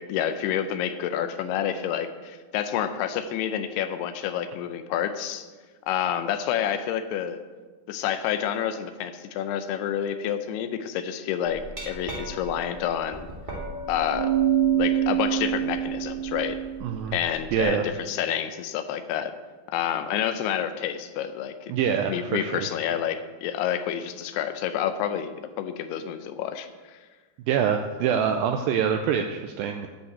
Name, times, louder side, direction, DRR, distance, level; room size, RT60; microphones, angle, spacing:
voice 1, 0.0-5.5 5.9-7.4 7.9-13.3 13.9-14.3 14.7-16.6 17.1-19.4 19.7-21.7 22.1-27.0, left 9 dB, 80° left, 9 dB, 2.7 m, -29 dB
Glass, 11.5-17.6, right 10 dB, 50° right, 0.5 m, -27 dB
voice 2, 16.8-17.2 17.5-17.9 21.7-22.7 27.5-29.9, right 8 dB, 90° right, 5 dB, 2.0 m, -25 dB
10.5 x 5.8 x 8.0 m, 1.3 s
omnidirectional pair, 4.7 m